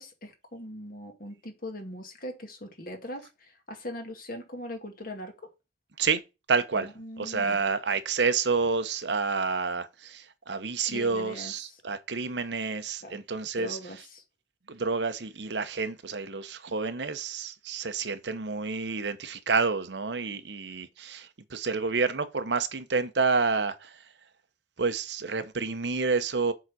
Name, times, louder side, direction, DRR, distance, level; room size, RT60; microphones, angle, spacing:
voice 1, 0.0-5.3 6.7-7.6 10.9-11.5 13.0-13.2 13.6-14.2, left 1 dB, 55° left, 2.1 m, -40 dB
voice 2, 6.5-13.8 14.7-24.0 24.8-26.5, right 4 dB, 80° right, 0.9 m, -29 dB
7.2 x 4.0 x 6.1 m
head